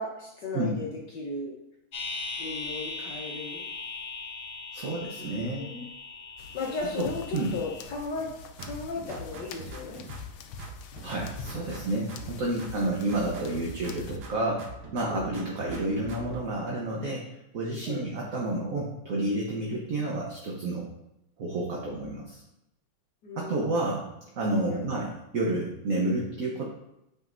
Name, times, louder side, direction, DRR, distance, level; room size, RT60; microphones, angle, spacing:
voice 1, 0.0-1.6 2.4-3.7 5.2-5.9 6.5-10.0 15.1-15.3 17.9-18.1 23.2-23.8 24.7-24.9, left 3 dB, 60° left, -3 dB, 1.5 m, -36 dB
sound 1, 1.9-7.8, left 3 dB, 35° left, 1.0 m, -39 dB
voice 2, 4.7-5.7 7.0-7.1 7.3-7.5 11.0-17.2 17.5-20.8 21.4-22.4 23.4-24.0 24.4-26.7, right 2 dB, 50° right, -2 dB, 1.2 m, -30 dB
sound 2, 6.4-14.2, left 6 dB, 80° left, 1.5 m, -45 dB
sound 3, 8.6-10.3 10.6-12.3 12.6-14.3 14.6-16.5, right 2 dB, 80° right, 1.8 m, -43 dB
8.9 x 5.4 x 2.6 m, 0.86 s
omnidirectional pair, 2.2 m